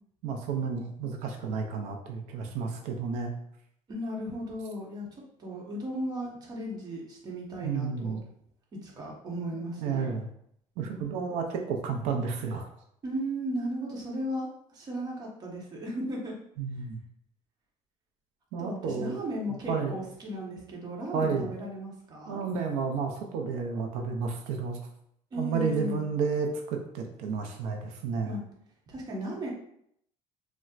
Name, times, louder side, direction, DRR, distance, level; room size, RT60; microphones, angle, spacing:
voice 1, 0.2-3.3 7.6-8.2 9.5-10.3 10.8-12.7 16.6-17.0 18.5-19.2 19.7-20.0 21.1-21.5 22.3-24.8 25.4-28.4, right 5 dB, 85° right, 3 dB, 0.5 m, -31 dB
voice 2, 3.9-5.1 5.4-8.2 8.8-10.1 13.0-16.4 18.6-22.4 25.3-26.1 28.2-28.4 28.9-29.5, equal, 35° right, -2 dB, 1.0 m, -35 dB
4.1 x 2.1 x 2.4 m, 0.71 s
cardioid pair, 130°, 11 cm